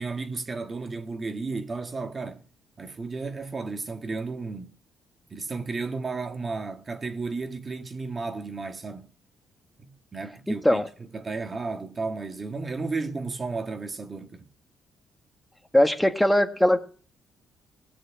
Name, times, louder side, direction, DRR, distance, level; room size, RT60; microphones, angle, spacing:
voice 1, 0.0-2.4 2.8-4.7 5.3-9.1 9.8-10.8 11.1-14.5, right 3 dB, 35° right, 1.9 m, -33 dB
voice 2, 10.5-10.9 15.7-16.8, left 1 dB, 5° left, 1.7 m, -20 dB
17.5 x 6.4 x 9.9 m
cardioid pair, 90°, 0 cm